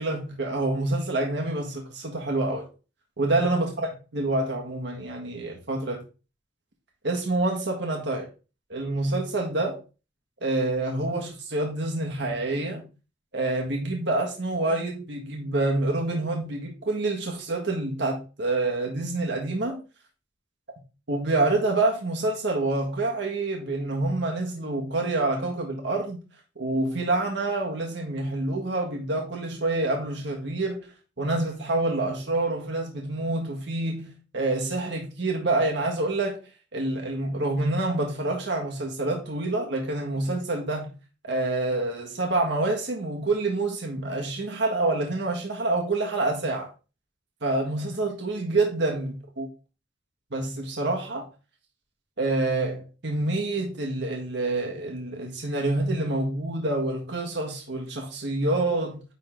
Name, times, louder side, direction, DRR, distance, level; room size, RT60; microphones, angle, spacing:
voice 1, 0.0-2.7 3.2-6.0 7.0-8.3 8.7-9.8 10.4-12.8 13.3-19.8 21.1-26.2 26.6-30.9 31.2-34.0 34.3-36.4 36.7-40.9 41.2-46.7 47.4-49.5 50.3-51.2 52.2-59.0, right 2 dB, 65° right, 1.7 m, -27 dB
9.8 x 3.8 x 3.7 m
head